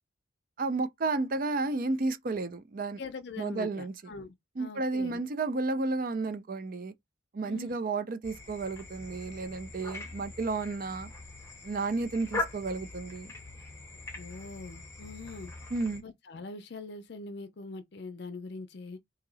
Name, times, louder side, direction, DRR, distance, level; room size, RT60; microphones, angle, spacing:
voice 1, 0.6-3.0 3.4-3.9 4.6-6.9 7.3-11.1 11.6-13.3 15.7-16.0, right 3 dB, 45° right, 0.4 m, -32 dB
voice 2, 3.0-5.2 7.5-7.8 14.1-15.5 16.0-19.0, left 3 dB, 55° left, 0.5 m, -43 dB
sound 1, 8.2-16.0, left 2 dB, 15° left, 0.7 m, -41 dB
2.9 x 2.7 x 3.9 m
head